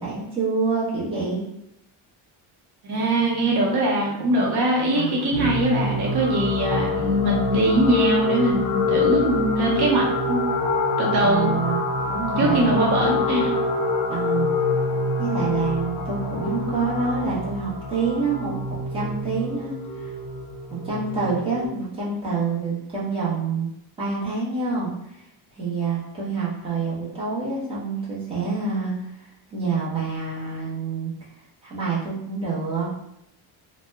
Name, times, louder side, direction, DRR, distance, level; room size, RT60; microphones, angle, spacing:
voice 1, 0.0-1.4 4.9-5.5 11.2-12.8 14.1-14.5 15.2-20.1 20.7-23.7 24.0-25.2 25.5-31.1 31.6-32.9, right 4 dB, 10° right, -7 dB, 0.7 m, -27 dB
voice 2, 2.8-10.4 11.0-11.5 12.4-13.5, right 1 dB, 55° right, -3 dB, 0.7 m, -22 dB
sound 1, 5.3-21.7, left 3 dB, 50° left, 0.5 m, -26 dB
2.8 x 2.1 x 3.3 m, 0.78 s
cardioid pair, 170°, 48 cm